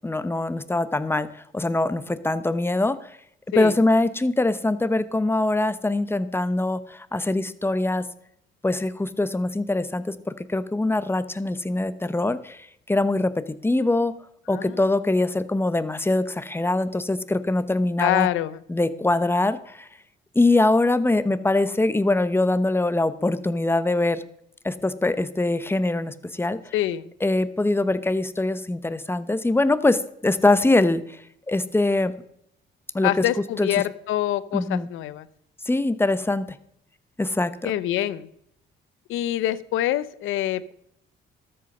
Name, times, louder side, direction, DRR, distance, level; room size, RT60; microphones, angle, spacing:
voice 1, 0.0-3.2 3.5-8.0 8.6-14.1 14.5-18.3 18.7-19.9 20.3-24.2 24.6-26.7 27.2-32.1 32.9-33.1 33.6-33.7 34.5-34.9 35.6-36.6 37.2-37.7, left 2 dB, 10° left, 13 dB, 0.9 m, -23 dB
voice 2, 18.0-18.6 26.7-27.1 33.0-35.3 37.6-38.3 39.1-40.7, left 13 dB, 90° left, 17 dB, 0.7 m, -25 dB
13.0 x 7.8 x 5.4 m, 0.72 s
cardioid pair, 90°, 20 cm